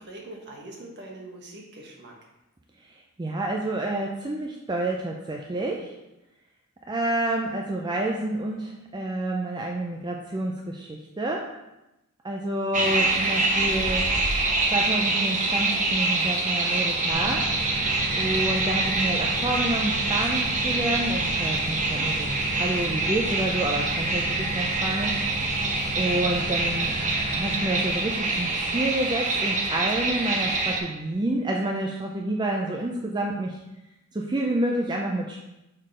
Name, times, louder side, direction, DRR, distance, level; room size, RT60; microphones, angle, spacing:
voice 1, 0.0-2.1, right 2 dB, 50° right, 0 dB, 1.4 m, -42 dB
voice 2, 3.2-5.9 6.9-11.5 12.2-14.1 14.7-17.5 18.2-25.2 25.9-26.9 27.3-33.6 34.1-35.4, right 1 dB, 20° right, 0 dB, 0.5 m, -28 dB
sound 1, 12.7-30.8, right 2 dB, 35° right, 0.9 m, -25 dB
sound 2, 17.1-30.3, equal, 85° left, 1.0 m, -36 dB
6.5 x 3.9 x 5.0 m, 0.95 s
head